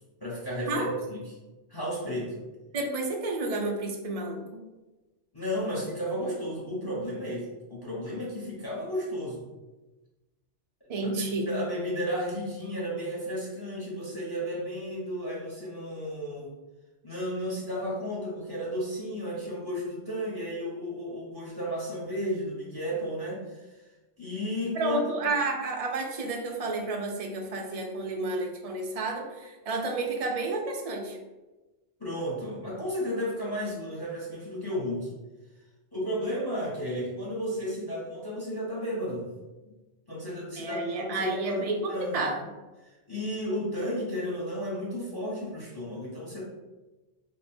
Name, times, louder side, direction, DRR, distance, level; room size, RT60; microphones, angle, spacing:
voice 1, 0.2-1.3 1.7-2.4 5.3-9.4 11.0-16.5 17.0-23.8 24.2-25.1 32.0-35.1 35.9-39.4 40.1-42.2 42.8-46.4, equal, 25° left, -5 dB, 0.7 m, -33 dB
voice 2, 2.7-4.6 10.9-11.5 24.7-31.2 40.6-42.4, right 2 dB, 45° right, 1 dB, 0.5 m, -31 dB
3.6 x 2.1 x 4.1 m, 1.1 s
omnidirectional pair, 1.2 m